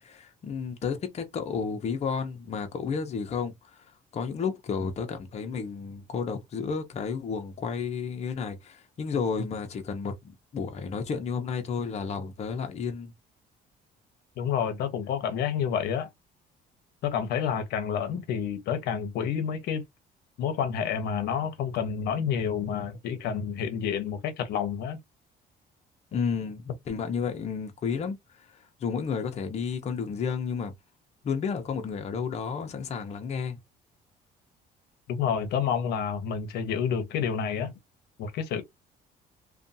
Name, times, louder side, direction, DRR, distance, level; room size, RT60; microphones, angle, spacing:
voice 1, 0.0-3.9 4.1-13.1 26.1-30.7 31.2-33.6, left 6 dB, 40° left, 0.6 m, -32 dB
voice 2, 14.4-16.1 17.0-19.8 20.4-25.0 35.1-37.7 38.2-38.6, left 7 dB, 75° left, 0.7 m, -29 dB
2.5 x 2.3 x 2.6 m
cardioid pair, 110°, 17 cm